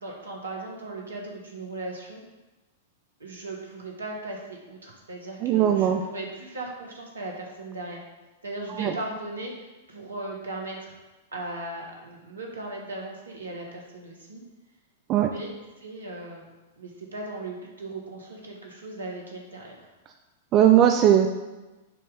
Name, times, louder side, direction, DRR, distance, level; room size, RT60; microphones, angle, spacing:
voice 1, 0.0-2.2 3.2-8.0 8.4-9.5 9.9-10.9 11.3-14.4 15.2-16.5 16.8-19.9, right 2 dB, 75° right, -1 dB, 1.3 m, -37 dB
voice 2, 5.4-6.0 8.8-8.9 15.1-15.3 20.5-21.3, right 10 dB, 30° right, 5 dB, 0.4 m, -18 dB
6.8 x 3.1 x 5.1 m, 1.1 s
figure-of-eight pair, 100°, 0 cm